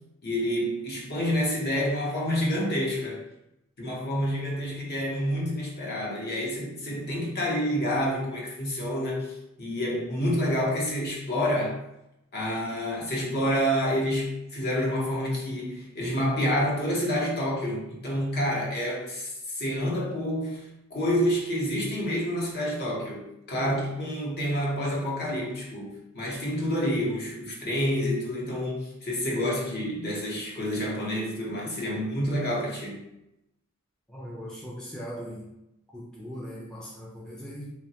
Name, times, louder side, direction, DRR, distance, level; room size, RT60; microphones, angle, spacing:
voice 1, 0.2-3.2 3.8-11.8 12.3-33.0, equal, 50° left, -3 dB, 0.8 m, -28 dB
voice 2, 34.1-35.5 35.9-37.7, equal, 5° left, -6 dB, 0.4 m, -39 dB
3.0 x 2.2 x 2.7 m, 0.87 s
head